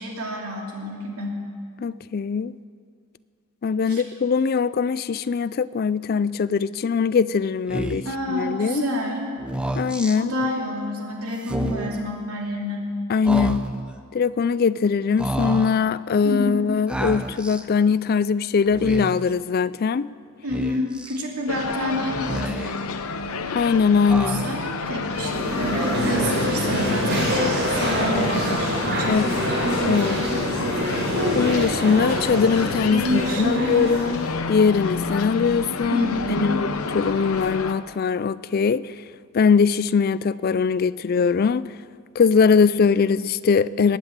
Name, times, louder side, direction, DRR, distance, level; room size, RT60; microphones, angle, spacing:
voice 1, 0.0-1.4 3.9-4.0 8.0-9.3 10.2-12.9 16.2-16.7 20.4-22.5 24.3-29.2 32.9-34.1 35.9-36.6, equal, 80° right, -1 dB, 2.8 m, -28 dB
voice 2, 1.8-2.6 3.6-8.8 9.8-10.3 13.1-13.7 14.1-20.1 23.5-24.4 29.1-29.4 29.9-30.3 31.3-36.7 36.9-39.0 39.3-41.7 42.2-44.0, left 5 dB, 40° left, 17 dB, 0.3 m, -21 dB
Speech, 7.7-8.2 9.4-10.2 11.4-12.0 13.2-13.9 15.2-15.8 16.9-17.6 18.7-19.3 20.5-21.2 22.1-22.9 24.1-24.8, right 1 dB, 5° right, 0.6 m, -30 dB
sound 1, 21.5-37.7, left 4 dB, 70° left, 0.8 m, -29 dB
sound 2, 25.1-35.2, equal, 50° right, 4.5 m, -26 dB
20.5 x 8.0 x 8.8 m, 2.2 s
head